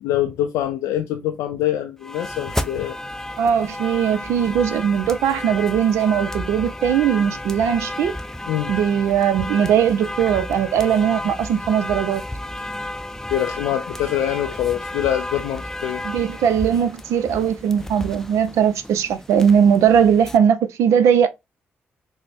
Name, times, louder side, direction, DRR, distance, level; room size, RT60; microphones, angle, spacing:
voice 1, 0.0-3.0 8.5-8.7 13.3-16.0, left 12 dB, 85° left, 0.3 m, -24 dB
sound 1, 2.0-20.4, left 1 dB, 10° left, 0.5 m, -32 dB
voice 2, 3.4-8.2 8.7-12.2 16.0-21.3, right 8 dB, 80° right, 0.4 m, -19 dB
3.8 x 2.1 x 3.2 m
supercardioid pair, 45°, 5 cm